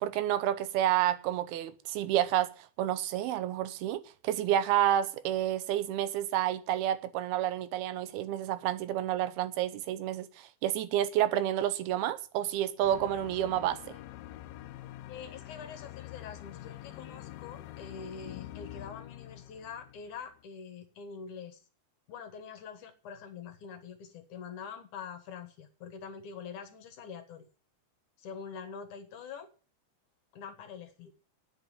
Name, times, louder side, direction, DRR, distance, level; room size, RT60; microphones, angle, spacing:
voice 1, 0.0-2.5 2.8-14.0, right 12 dB, 90° right, 2.9 m, -29 dB
sound 1, 12.8-20.4, left 14 dB, 75° left, 2.4 m, -46 dB
voice 2, 15.1-21.6 22.1-27.5 28.2-29.5 30.3-31.1, left 6 dB, 60° left, 2.7 m, -45 dB
9.2 x 8.2 x 9.2 m
omnidirectional pair, 4.3 m